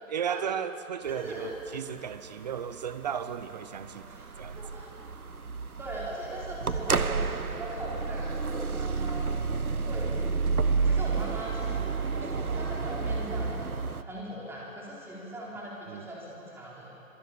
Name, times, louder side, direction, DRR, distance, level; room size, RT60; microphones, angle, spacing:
voice 1, 0.1-4.1 4.4-4.6 15.9-16.1, right 8 dB, 30° right, 13 dB, 0.9 m, -35 dB
voice 2, 1.1-1.5 4.1-4.9 5.8-9.3 9.8-16.9, right 1 dB, 5° right, -5 dB, 4.2 m, -40 dB
sound 1, 1.1-14.0, right 4 dB, 85° right, 1.2 m, -31 dB
26.5 x 21.0 x 8.6 m, 2.8 s
figure-of-eight pair, 140°, 42 cm